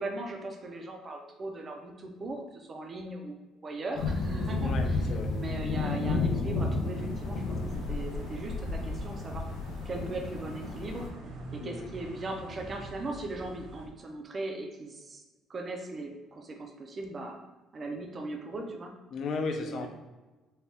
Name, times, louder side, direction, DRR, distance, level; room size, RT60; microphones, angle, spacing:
voice 1, 0.0-4.7 5.3-7.6 7.9-9.4 9.8-11.1 11.5-15.2 15.5-17.4 17.7-18.9 19.6-19.9, right 2 dB, 25° right, 2 dB, 0.5 m, -38 dB
sound 1, 4.0-11.1, left 3 dB, 75° left, 0.8 m, -32 dB
voice 2, 4.6-5.4 11.6-11.9 19.1-19.9, left 4 dB, 45° left, 4 dB, 0.5 m, -35 dB
sound 2, 6.9-13.9, right 1 dB, 65° right, 0.7 m, -45 dB
4.2 x 2.3 x 3.4 m, 1.2 s
cardioid pair, 170°, 0 cm